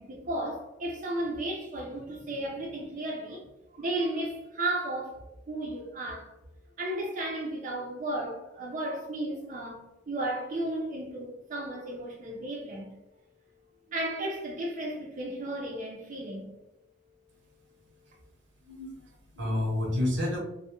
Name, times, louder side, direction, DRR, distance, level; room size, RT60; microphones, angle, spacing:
voice 1, 0.0-3.4 3.7-6.3 6.8-12.9 13.9-16.5, right 1 dB, 45° right, 0.4 m, -34 dB
voice 2, 18.7-20.4, left 1 dB, 85° right, 0.7 m, -30 dB
2.2 x 2.0 x 2.8 m
head